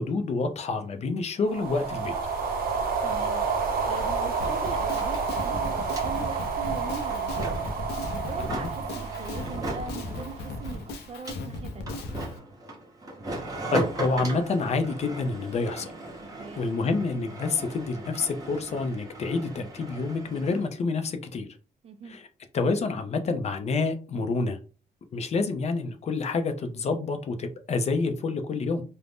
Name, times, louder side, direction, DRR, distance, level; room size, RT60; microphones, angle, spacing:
voice 1, 0.0-2.1 13.7-15.9 16.6-21.5 22.1-22.2 22.5-24.6 25.1-28.8, left 3 dB, 40° left, 0.4 m, -28 dB
sound 1, 1.4-10.9, right 5 dB, 65° right, 0.8 m, -30 dB
voice 2, 3.0-3.4 3.9-7.5 8.1-12.0 16.2-16.7 21.8-22.2, right 5 dB, 35° right, 0.4 m, -41 dB
Drum kit, 4.4-12.3, left 2 dB, 85° left, 0.6 m, -37 dB
sound 2, 4.5-20.7, right 2 dB, 20° right, 0.8 m, -39 dB
2.5 x 2.1 x 3.3 m
cardioid pair, 145°, 16 cm